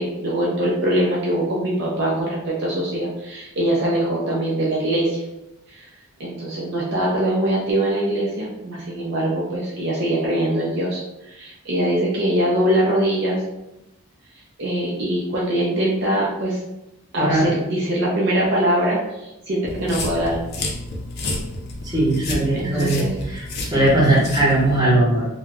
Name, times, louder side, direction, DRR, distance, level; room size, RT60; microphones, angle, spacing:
voice 1, 0.0-5.2 5.7-5.9 6.2-13.4 14.6-16.6 17.1-20.4 22.5-23.1, right 1 dB, 55° right, -4 dB, 0.5 m, -22 dB
voice 2, 17.2-17.5 21.8-25.3, right 1 dB, 20° right, -7 dB, 0.8 m, -19 dB
sound 1, 19.7-24.8, left 2 dB, 50° left, 0.4 m, -31 dB
2.2 x 2.0 x 3.4 m, 0.91 s
head